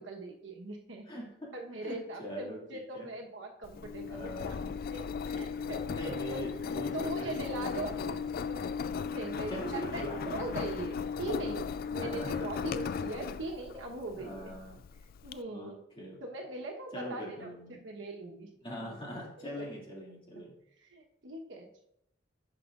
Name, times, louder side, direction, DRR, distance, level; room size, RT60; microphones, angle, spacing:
voice 1, 0.0-1.1 1.5-6.4 6.9-8.1 8.5-8.6 9.0-14.5 15.2-15.8 16.2-18.5 19.6-19.7 20.8-21.8, right 2 dB, 75° right, 1 dB, 1.1 m, -41 dB
voice 2, 1.1-1.5 1.8-3.1 4.1-4.7 5.9-8.0 9.3-10.4 12.1-12.5 14.2-14.8 15.5-15.7 16.0-16.2 16.9-17.8 18.6-20.5, equal, 30° left, -3 dB, 2.2 m, -42 dB
Engine, 3.6-15.3, left 6 dB, 50° left, 0.3 m, -37 dB
10.5 x 5.8 x 2.5 m, 0.76 s
head